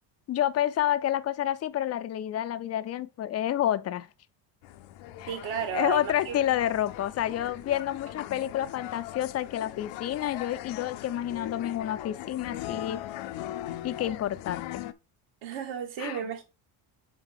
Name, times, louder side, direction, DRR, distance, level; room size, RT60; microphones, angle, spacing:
voice 1, 0.3-4.1 5.2-5.3 5.7-13.0 13.8-14.9 16.0-16.2, left 11 dB, 35° left, 0.4 m, -29 dB
sound 1, 4.6-14.9, left 13 dB, 70° left, 0.7 m, -40 dB
voice 2, 5.3-6.4 15.4-16.4, right 9 dB, 70° right, 2.0 m, -33 dB
6.8 x 4.0 x 3.5 m
cardioid pair, 120°, 49 cm